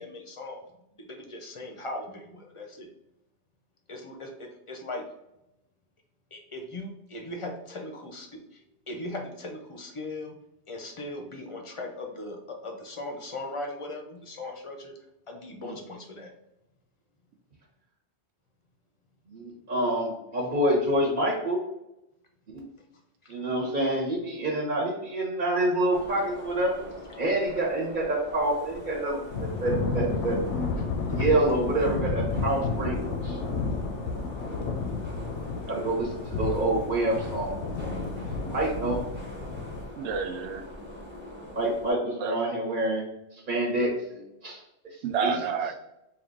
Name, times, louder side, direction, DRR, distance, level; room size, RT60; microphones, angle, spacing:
voice 1, 0.0-2.9 3.9-5.1 6.3-8.6 8.9-10.4 10.7-15.0 15.3-16.3 23.2-23.4 30.8-31.4, left 2 dB, 40° left, 3 dB, 0.5 m, -39 dB
voice 2, 19.3-21.6 22.5-22.6 23.3-26.8 27.2-30.8 31.2-33.4 35.7-37.9 38.5-39.0 41.5-45.4, right 1 dB, 45° right, -4 dB, 1.1 m, -27 dB
sound 1, 25.9-41.9, left 1 dB, 10° right, 1.0 m, -43 dB
Thunder / Rain, 29.3-39.8, left 4 dB, 90° left, 0.9 m, -31 dB
voice 3, 40.0-40.6 42.2-42.4 45.0-45.7, right 6 dB, 75° right, 6 dB, 0.8 m, -29 dB
3.6 x 2.4 x 3.8 m, 0.88 s
omnidirectional pair, 1.2 m